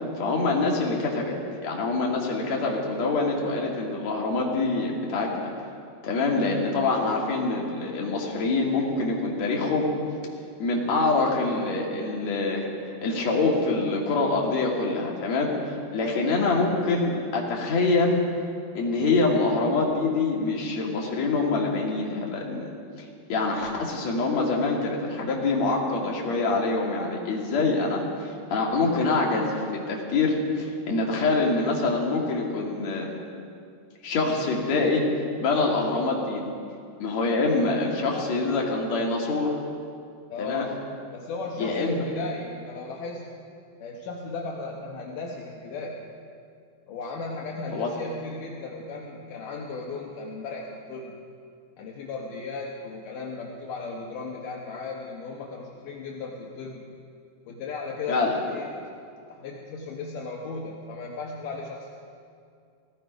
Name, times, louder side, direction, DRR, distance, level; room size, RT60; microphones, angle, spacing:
voice 1, 0.1-1.3 1.6-5.5 6.0-9.9 10.6-12.7 13.0-15.5 15.9-18.2 18.7-22.7 23.0-33.1 34.0-35.0 35.4-36.4 37.0-39.5 40.4-40.7 41.6-42.0 47.7-47.9 58.1-58.3, left 3 dB, 45° left, -2 dB, 2.8 m, -25 dB
voice 2, 16.0-16.5 37.9-38.4 40.3-40.8 41.1-43.3 43.8-46.1 46.9-51.2 51.8-56.9 57.5-58.7 59.3-61.9, left 3 dB, 65° left, -1 dB, 2.2 m, -36 dB
17.5 x 16.0 x 5.1 m, 2.3 s
omnidirectional pair, 5.1 m